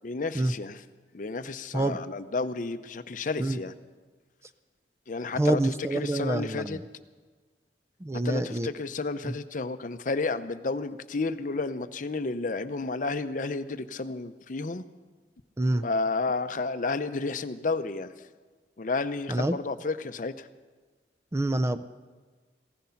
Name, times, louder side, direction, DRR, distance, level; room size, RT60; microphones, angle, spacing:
voice 1, 0.0-0.8 1.1-3.7 5.1-5.6 5.9-6.8 8.2-14.8 15.8-18.1 18.8-20.5, left 3 dB, 45° left, 11 dB, 0.6 m, -31 dB
voice 2, 5.4-6.8 8.0-8.7 9.2-9.3 15.6-15.8 19.3-19.6 21.3-21.8, right 1 dB, 15° right, 11 dB, 0.4 m, -27 dB
16.5 x 14.5 x 5.7 m, 1.4 s
head